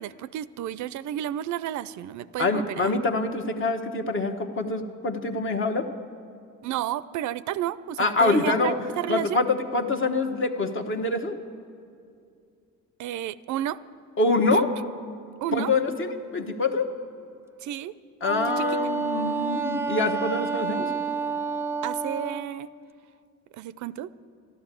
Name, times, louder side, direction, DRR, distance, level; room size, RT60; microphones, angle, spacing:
voice 1, 0.0-2.9 6.6-9.4 13.0-13.8 14.5-14.6 15.4-15.7 17.6-17.9 18.6-18.7 21.8-22.7 23.5-24.1, right 12 dB, 75° right, 17 dB, 0.4 m, -31 dB
voice 2, 2.4-5.9 8.0-8.8 9.1-11.4 14.2-14.7 15.5-16.9 18.2-20.9, left 3 dB, 40° left, 5 dB, 1.1 m, -25 dB
Wind instrument woodwind instrument, 18.2-22.5, right 4 dB, 10° right, 0.5 m, -29 dB
12.5 x 11.5 x 8.2 m, 2.4 s
cardioid pair, 90°, 30 cm